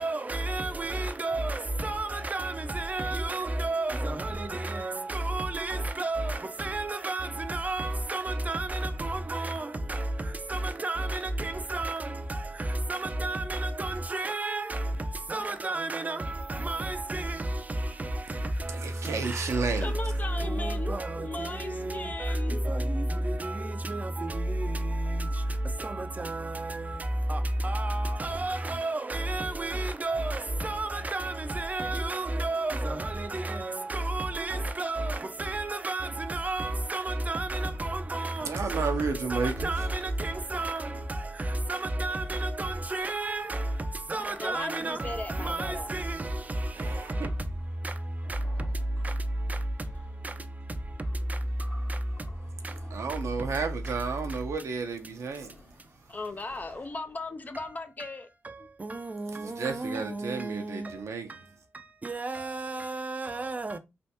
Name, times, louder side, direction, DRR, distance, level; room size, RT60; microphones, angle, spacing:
voice 1, 0.0-1.5 1.8-3.9 4.8-6.2 6.6-8.7 9.1-9.6 10.8-11.1 11.7-12.0 12.9-13.4 13.8-14.6 15.3-16.2 16.6-17.2 20.6-21.0 23.9-24.0 27.6-27.8 28.2-30.3 30.6-32.7 33.9-35.1 35.4-37.6 38.1-38.3 39.3-39.9 40.2-40.8 41.7-42.2 42.6-43.4 44.1-45.0 45.4-45.6 45.9-46.0 58.8-58.9 60.3-60.4 62.1-63.7, right 2 dB, 30° right, 0.5 m, -31 dB
voice 2, 18.7-19.9 38.4-39.7 46.7-47.3 52.9-55.6 59.3-61.4, right 4 dB, 70° right, 0.7 m, -32 dB
voice 3, 19.8-22.8 44.4-45.9 56.1-58.3 58.6-58.7, left 2 dB, 30° left, 0.5 m, -37 dB
sound 1, 39.0-57.7, right 1 dB, 50° left, 1.5 m, -50 dB
3.4 x 2.5 x 2.8 m
cardioid pair, 65°, 5 cm